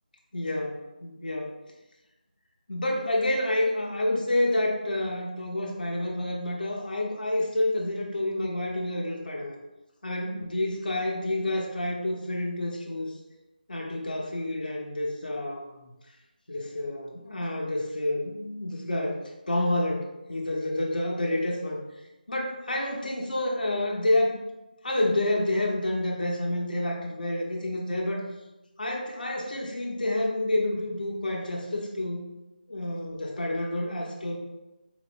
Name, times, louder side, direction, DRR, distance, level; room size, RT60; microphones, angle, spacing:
voice 1, 0.3-1.6 2.7-9.6 10.0-13.1 13.7-15.9 16.5-21.8 22.3-24.4 24.8-28.3 28.8-32.3 32.7-34.4, left 1 dB, 60° left, -1 dB, 0.9 m, -29 dB
4.2 x 2.0 x 4.3 m, 1.0 s
figure-of-eight pair, 170°, 5 cm